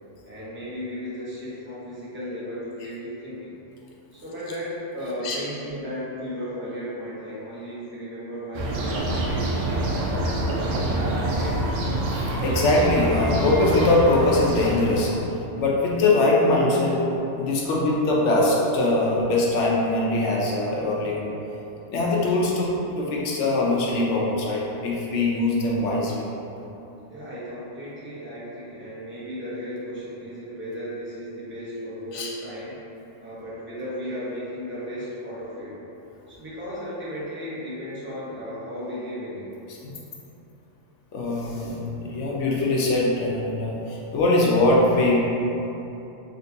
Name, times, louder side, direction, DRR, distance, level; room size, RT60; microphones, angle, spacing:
voice 1, 0.3-3.5 4.1-11.8 27.1-32.8 33.2-35.7 36.3-39.5, equal, 15° right, -9 dB, 0.6 m, -35 dB
sound 1, 8.5-15.2, right 1 dB, 90° right, 0.9 m, -26 dB
voice 2, 12.4-15.1 15.6-17.0 17.4-21.2 21.9-26.2 32.1-32.3 39.8-39.9 41.1-45.2, left 2 dB, 75° left, -3 dB, 0.9 m, -22 dB
3.9 x 2.6 x 2.7 m, 2.9 s
omnidirectional pair, 1.2 m